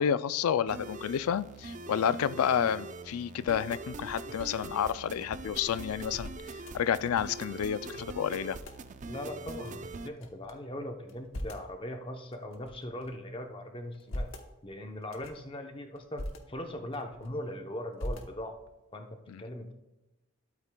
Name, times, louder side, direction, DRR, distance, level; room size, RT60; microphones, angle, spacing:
voice 1, 0.0-6.3 6.7-8.6 19.3-19.4, left 8 dB, 90° left, 16 dB, 0.4 m, -30 dB
sound 1, 0.7-10.1, right 3 dB, 35° right, 0.4 m, -43 dB
sound 2, 4.1-7.6 7.9-8.0 8.2-8.8 9.5-10.5 11.0-11.7 12.3-13.3 13.8-14.5 15.0-15.5 16.0-16.4 16.9-17.5 18.0-18.7, left 1 dB, 65° left, 0.9 m, -43 dB
voice 2, 9.0-14.3 14.6-18.5 18.9-19.1 19.4-19.7, left 1 dB, 25° left, 5 dB, 0.7 m, -40 dB
12.0 x 8.2 x 2.3 m, 1.1 s
head